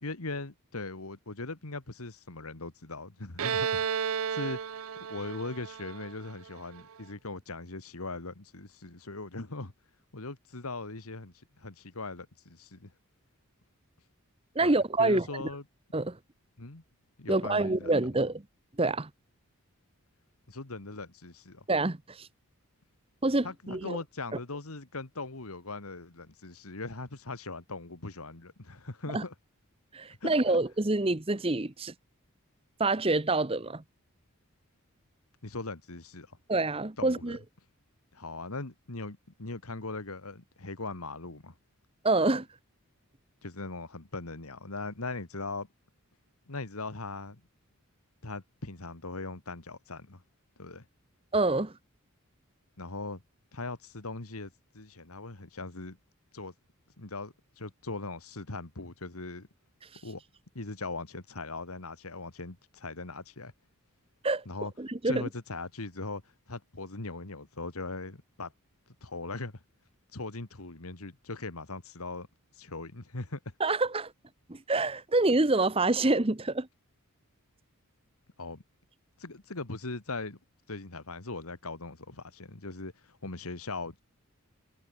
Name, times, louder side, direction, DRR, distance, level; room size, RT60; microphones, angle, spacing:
voice 1, 0.0-3.8 4.3-4.6 5.0-9.7 10.1-12.9 14.6-15.6 16.6-16.8 17.2-17.9 20.5-21.6 23.4-29.3 30.2-30.6 35.4-36.4 37.0-37.4 38.1-41.5 43.4-45.7 46.5-47.4 48.2-50.2 50.6-50.8 52.8-53.2 53.5-56.0 56.3-56.5 57.0-59.5 60.0-60.2 60.5-63.5 64.5-64.7 65.0-66.2 66.5-68.5 69.0-69.6 70.1-72.3 72.6-73.4 78.4-78.6 79.2-80.4 80.7-84.0, left 3 dB, 80° left, 2.1 m, -40 dB
Bowed string instrument, 3.4-6.9, right 7 dB, 75° right, 0.6 m, -33 dB
voice 2, 14.5-15.3 15.9-16.2 17.3-18.4 18.8-19.1 21.7-22.3 23.2-24.0 29.1-29.2 29.9-31.9 32.8-33.8 36.5-37.4 42.0-42.5 51.3-51.7 64.2-64.4 64.8-65.3 73.6-74.1 74.5-76.7, right 2 dB, 25° right, 0.9 m, -27 dB
head